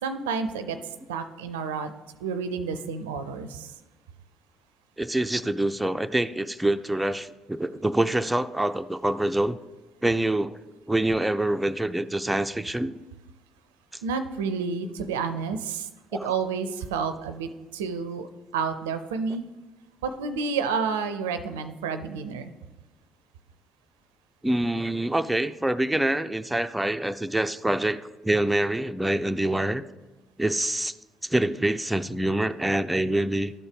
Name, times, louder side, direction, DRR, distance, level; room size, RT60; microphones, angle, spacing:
voice 1, 0.0-0.8 1.1-1.9 2.2-3.7 14.0-18.3 18.5-19.5 20.0-22.5, right 5 dB, 80° right, 10 dB, 0.4 m, -30 dB
voice 2, 5.0-9.6 10.0-10.6 10.9-13.0 13.9-14.0 16.1-16.3 24.4-29.8 30.4-31.0 31.2-33.5, right 1 dB, 10° right, 9 dB, 0.4 m, -26 dB
12.0 x 4.4 x 5.1 m, 1.2 s
hypercardioid pair, 50°, 0 cm